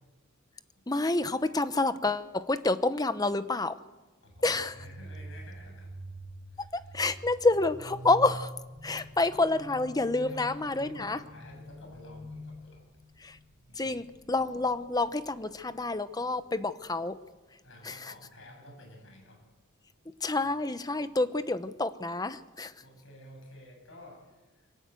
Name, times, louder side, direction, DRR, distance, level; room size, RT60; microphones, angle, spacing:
voice 1, 0.9-3.8 4.4-4.7 6.7-8.5 8.8-11.2 13.2-13.4 13.8-17.2 17.8-17.9 20.2-22.7, left 2 dB, 20° left, 12 dB, 0.9 m, -28 dB
voice 2, 4.2-6.0 6.5-7.0 7.5-7.6 10.2-12.9 13.7-14.1 17.6-19.4 20.3-20.5 22.8-24.7, left 1 dB, 65° left, 2 dB, 7.9 m, -51 dB
sound 1, 4.3-15.8, equal, 50° right, 2.2 m, -46 dB
25.0 x 18.0 x 7.8 m, 1.2 s
head